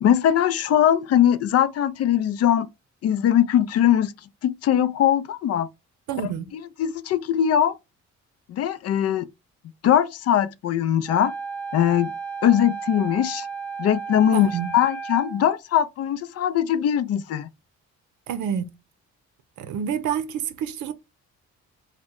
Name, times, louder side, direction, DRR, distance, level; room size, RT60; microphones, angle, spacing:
voice 1, 0.0-2.7 3.0-4.1 4.4-5.7 6.2-7.8 8.5-9.3 9.8-11.3 11.7-12.1 12.4-13.5 13.8-17.5, left 10 dB, 55° left, 0.4 m, -21 dB
voice 2, 6.1-6.5 14.3-14.7 18.3-18.7 19.6-20.9, right 8 dB, 75° right, 0.6 m, -28 dB
Wind instrument woodwind instrument, 11.1-15.5, right 5 dB, 5° left, 0.6 m, -34 dB
3.0 x 2.2 x 3.5 m
cardioid pair, 90°, 30 cm